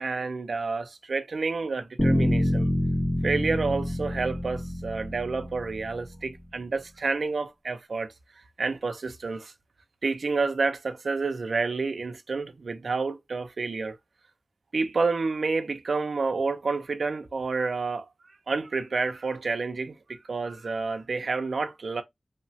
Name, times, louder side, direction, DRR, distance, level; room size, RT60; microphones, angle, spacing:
voice 1, 0.0-2.7 3.2-8.1 8.6-9.5 10.0-14.0 14.7-18.1 18.5-22.0, right 4 dB, 90° right, 0.3 m, -29 dB
sound 1, 2.0-6.0, equal, 30° left, 1.7 m, -27 dB
3.0 x 2.1 x 2.5 m
wide cardioid pair, 70°, 0 cm